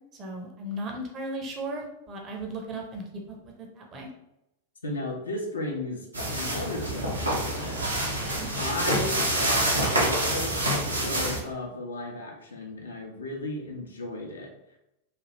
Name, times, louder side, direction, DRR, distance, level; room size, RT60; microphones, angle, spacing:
voice 1, 0.1-4.1 8.0-8.5, right 1 dB, 30° right, 0 dB, 0.6 m, -37 dB
voice 2, 4.8-6.1 6.3-7.8 8.6-14.5, left 2 dB, 70° left, 1 dB, 0.6 m, -35 dB
sound 1, 6.1-11.4, right 1 dB, 80° right, 0.7 m, -27 dB
3.2 x 2.3 x 2.9 m, 0.86 s
figure-of-eight pair, 90°, 0 cm